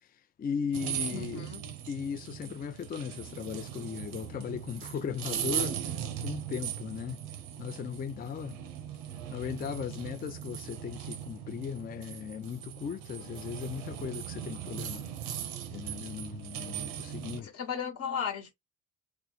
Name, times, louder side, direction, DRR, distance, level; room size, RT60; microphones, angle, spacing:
voice 1, 0.4-1.5 1.9-7.2 7.6-8.6 9.3-15.1 15.7-17.5, left 7 dB, 30° left, 0.4 m, -37 dB
sound 1, 0.7-17.4, right 10 dB, 90° right, 0.6 m, -39 dB
voice 2, 1.1-1.6 17.4-18.5, left 7 dB, 45° left, 1.1 m, -35 dB
2.9 x 2.1 x 3.9 m
supercardioid pair, 60°, 34 cm